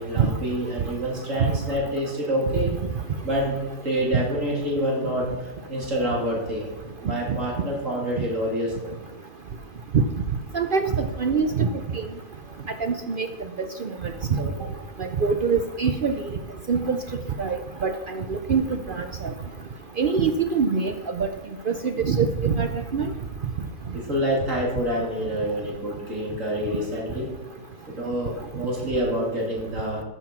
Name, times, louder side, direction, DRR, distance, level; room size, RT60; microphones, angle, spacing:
voice 1, 0.0-2.7 3.2-6.7 7.0-8.9 14.5-14.7 23.9-27.3 27.9-30.0, equal, 50° right, -2 dB, 3.3 m, -27 dB
voice 2, 10.5-11.7 11.9-12.1 12.8-13.3 13.8-14.5 15.0-16.1 16.7-17.0 17.4-19.3 20.0-21.3 21.7-23.1, right 5 dB, 75° right, 8 dB, 0.4 m, -24 dB
13.0 x 7.0 x 6.0 m, 1.1 s
omnidirectional pair, 1.7 m